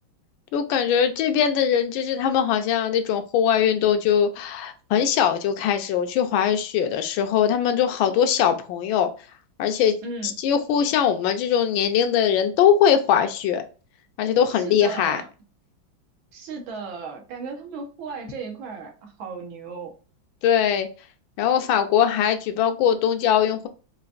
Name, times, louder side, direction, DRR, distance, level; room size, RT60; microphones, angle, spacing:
voice 1, 0.5-9.1 9.6-9.9 10.2-13.6 14.2-15.2 20.4-20.9 21.4-23.7, left 8 dB, 85° left, 7 dB, 1.4 m, -21 dB
voice 2, 10.0-10.3 14.5-15.3 16.3-19.9, right 4 dB, 85° right, 3 dB, 1.7 m, -35 dB
4.9 x 2.5 x 2.4 m, 0.36 s
omnidirectional pair, 2.1 m